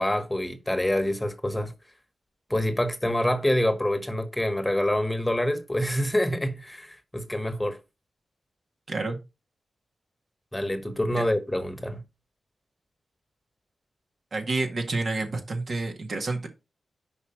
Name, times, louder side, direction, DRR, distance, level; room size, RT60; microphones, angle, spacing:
voice 1, 0.0-1.7 2.5-7.8 10.5-12.0, left 1 dB, 15° left, 1.2 m, -26 dB
voice 2, 8.9-9.2 11.1-11.2 14.3-16.5, right 3 dB, 65° right, 1.9 m, -29 dB
5.4 x 4.9 x 5.0 m
cardioid pair, 55°, 0 cm